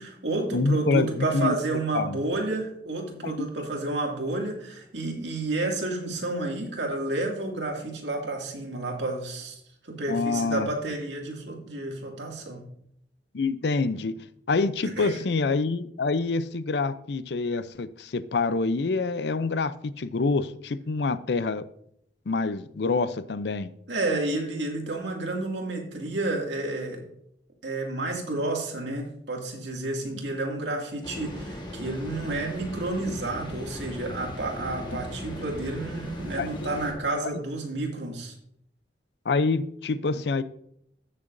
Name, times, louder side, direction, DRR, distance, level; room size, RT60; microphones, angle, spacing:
voice 1, 0.0-12.7 14.8-15.2 23.9-27.0 27.6-38.3, right 2 dB, 80° right, 1 dB, 2.3 m, -30 dB
voice 2, 0.5-1.6 1.9-2.2 3.2-3.3 10.1-10.7 13.3-21.6 22.3-23.7 36.4-36.7 39.3-40.4, left 3 dB, 70° left, 15 dB, 0.5 m, -26 dB
sound 1, 31.0-36.9, left 1 dB, 25° left, 1.3 m, -38 dB
15.0 x 6.7 x 2.6 m, 0.70 s
head